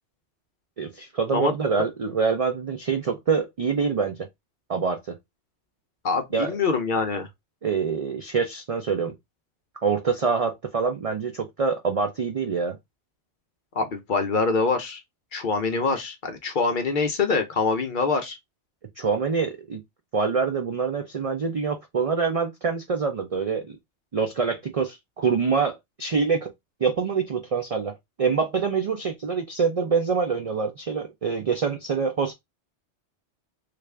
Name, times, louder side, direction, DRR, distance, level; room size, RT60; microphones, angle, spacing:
voice 1, 0.8-4.1 4.7-5.0 6.3-6.5 7.6-9.1 9.8-12.8 19.0-19.8 20.1-23.8 24.1-26.5 26.8-32.3, right 5 dB, 60° right, 0.3 m, -25 dB
voice 2, 6.0-7.3 13.7-15.0 15.3-18.4, left 4 dB, 55° left, 0.7 m, -24 dB
3.3 x 2.4 x 3.2 m
omnidirectional pair, 1.2 m